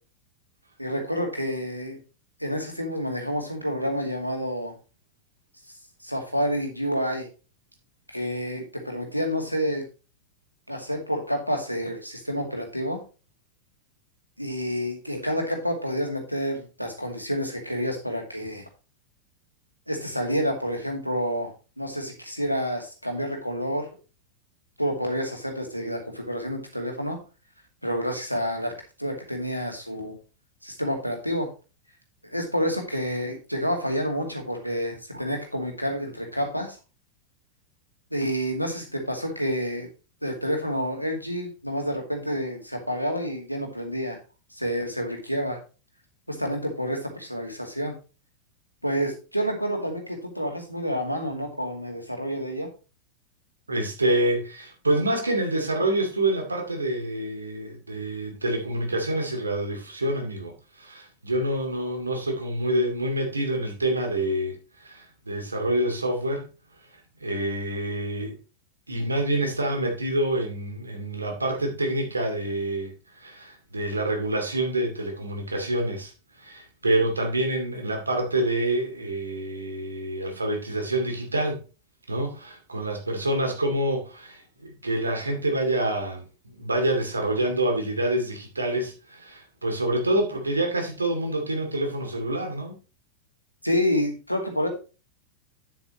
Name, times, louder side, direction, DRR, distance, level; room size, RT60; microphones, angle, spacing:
voice 1, 0.8-2.0 2.4-4.7 6.0-7.3 8.1-9.8 10.7-13.0 14.4-18.7 19.9-23.9 24.8-27.2 27.8-28.7 29.0-30.2 30.6-31.5 32.2-36.8 38.1-39.9 40.2-44.2 44.5-45.6 46.3-47.9 48.8-52.7 93.6-94.7, equal, 90° left, 2.3 m, -29 dB
voice 2, 53.7-66.5 67.2-68.4 68.9-72.9 73.2-76.1 76.4-81.6 82.1-92.7, right 1 dB, 80° right, 2.6 m, -27 dB
9.3 x 8.2 x 3.1 m
figure-of-eight pair, 90°, 0 cm